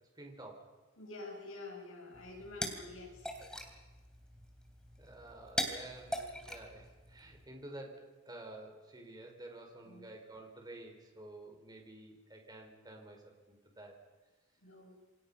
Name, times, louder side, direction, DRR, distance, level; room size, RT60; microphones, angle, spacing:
voice 1, 0.2-0.7 5.0-14.0, right 2 dB, 20° right, 2 dB, 4.8 m, -51 dB
voice 2, 1.0-3.3 9.8-10.1 14.6-15.0, left 2 dB, 65° left, 1 dB, 7.0 m, -48 dB
sound 1, 2.1-7.4, equal, 5° left, 3.3 m, -42 dB
28.0 x 25.0 x 5.6 m, 1.3 s
head